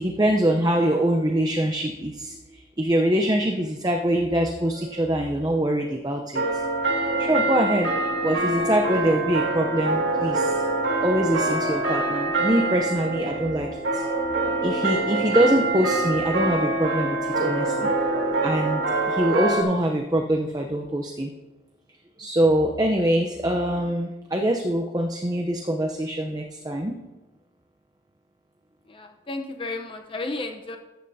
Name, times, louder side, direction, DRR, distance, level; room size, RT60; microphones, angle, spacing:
voice 1, 0.0-6.6 7.2-10.6 11.0-14.0 14.6-17.9 18.4-21.3 22.2-26.9, right 1 dB, 20° right, 3 dB, 0.7 m, -24 dB
sound 1, 4.8-5.7 6.3-19.6, right 2 dB, 75° right, 2.1 m, -25 dB
voice 2, 28.8-30.8, left 2 dB, 30° left, 4 dB, 0.8 m, -33 dB
14.0 x 9.7 x 2.8 m, 1.1 s
head